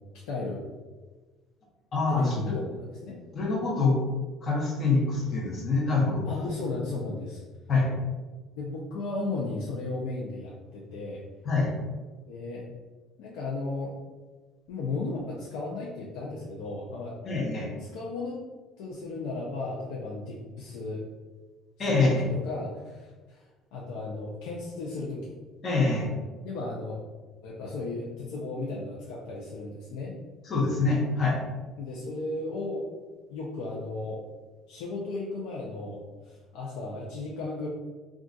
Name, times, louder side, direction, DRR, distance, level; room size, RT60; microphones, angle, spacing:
voice 1, 0.3-0.6 2.1-3.2 6.3-7.4 8.5-11.2 12.3-12.7 13.2-13.9 14.7-17.2 17.9-18.4 18.8-21.0 21.8-25.3 26.4-27.0 27.4-30.2 31.8-32.9 33.3-34.2 34.7-37.7, left 3 dB, 90° left, -5 dB, 0.5 m, -35 dB
voice 2, 1.9-2.4 3.3-4.0 4.4-6.2 7.7-7.9 11.4-11.7 17.2-17.7 21.8-22.3 25.6-26.1 30.4-31.4, left 3 dB, 35° left, -3 dB, 0.8 m, -25 dB
2.4 x 2.3 x 3.9 m, 1.3 s
cardioid pair, 160°, 0 cm